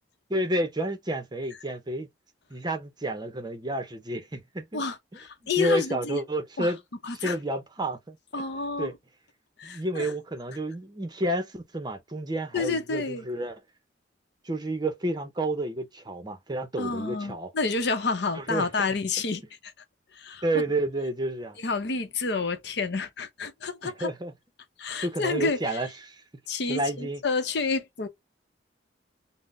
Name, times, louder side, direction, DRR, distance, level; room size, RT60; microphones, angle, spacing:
voice 1, 0.3-2.1 2.5-4.8 5.4-6.8 7.2-8.4 8.8-8.9 9.6-13.6 14.4-17.5 18.3-18.7 20.4-21.6 23.8-24.3 25.0-26.2 26.7-27.2, right 1 dB, 25° right, 0.6 m, -30 dB
voice 2, 4.7-6.2 6.6-6.7 7.0-7.4 8.3-8.9 9.6-10.1 12.5-13.2 16.8-19.4 20.1-20.4 21.6-24.1 24.8-25.6 26.5-28.1, left 4 dB, 65° left, 0.7 m, -29 dB
3.6 x 2.1 x 2.5 m
head